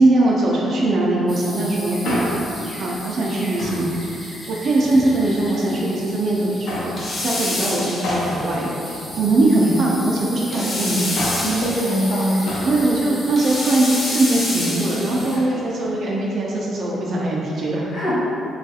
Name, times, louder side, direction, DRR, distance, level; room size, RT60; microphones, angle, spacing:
voice 1, 0.0-2.3 2.7-3.9 4.5-8.7 9.2-11.2 12.6-17.9, right 2 dB, 55° right, -4 dB, 0.4 m, -20 dB
sound 1, 1.3-15.4, equal, 10° left, 0.8 m, -36 dB
Male speech man speaking, 1.8-2.6 3.6-4.0 4.8-5.6 6.7-7.0 8.0-9.7 10.9-11.6 12.5-12.8 13.1-13.2, left 1 dB, 90° left, 0.5 m, -30 dB
sound 2, 7.0-8.5 10.5-12.2 13.4-15.4, left 2 dB, 45° left, 0.5 m, -27 dB
voice 2, 11.4-12.8 15.3-15.4 17.9-18.1, equal, 70° left, -8 dB, 0.9 m, -23 dB
3.0 x 2.4 x 2.6 m, 2.8 s
cardioid pair, 90°, 0 cm